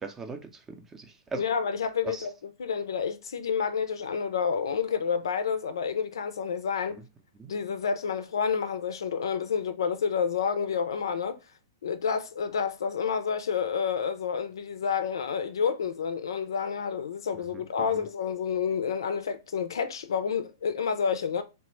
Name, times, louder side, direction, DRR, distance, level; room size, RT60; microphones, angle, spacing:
voice 1, 0.0-1.4 2.0-2.3 6.9-7.1 7.3-7.5 17.3-18.1, right 4 dB, 15° right, 0.5 m, -40 dB
voice 2, 1.4-2.3 2.6-7.0 7.5-11.4 11.8-21.4, left 6 dB, 75° left, 0.4 m, -29 dB
3.1 x 2.1 x 3.0 m
hypercardioid pair, 120°, 2 cm